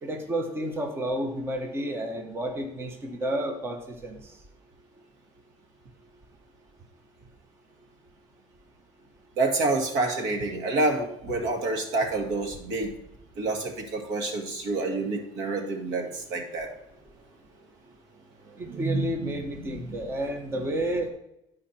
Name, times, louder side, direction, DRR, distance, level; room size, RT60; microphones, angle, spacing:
voice 1, 0.0-4.4 18.6-21.1, right 1 dB, 20° right, 3 dB, 1.1 m, -31 dB
voice 2, 9.4-12.9 13.4-16.7 18.7-19.8 20.5-20.6, right 2 dB, 85° right, 3 dB, 2.0 m, -28 dB
11.0 x 5.0 x 4.3 m, 0.83 s
cardioid pair, 155°, 12 cm